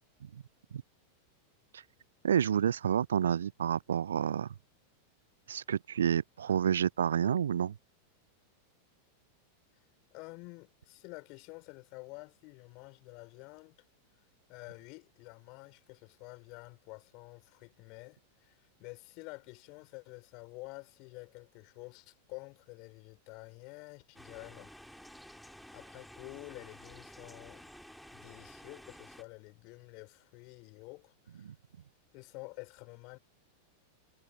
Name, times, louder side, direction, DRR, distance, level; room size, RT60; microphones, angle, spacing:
voice 1, 2.2-4.5 5.5-7.7 31.4-31.5, right 8 dB, 65° right, 0.4 m, -29 dB
voice 2, 10.1-13.8 14.5-24.8 25.1-25.4 25.7-27.7 28.1-31.5 32.1-33.2, left 28 dB, 45° left, 4.5 m, -49 dB
sound 1, 24.1-29.2, equal, ahead, 3.7 m, -52 dB
figure-of-eight pair, 90°, 0 cm